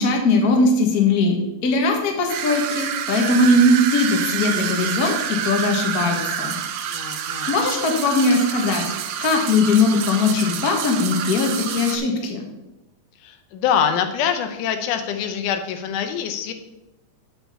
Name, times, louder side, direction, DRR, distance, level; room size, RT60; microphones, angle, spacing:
voice 1, 0.0-6.6 7.5-8.9 9.2-12.5, left 2 dB, 50° left, 2 dB, 1.2 m, -20 dB
sound 1, 2.3-12.0, right 9 dB, 85° right, 2.2 m, -28 dB
voice 2, 6.9-7.6 13.2-16.5, left 8 dB, 85° left, 7 dB, 2.3 m, -24 dB
8.0 x 6.0 x 5.3 m, 0.95 s
omnidirectional pair, 3.5 m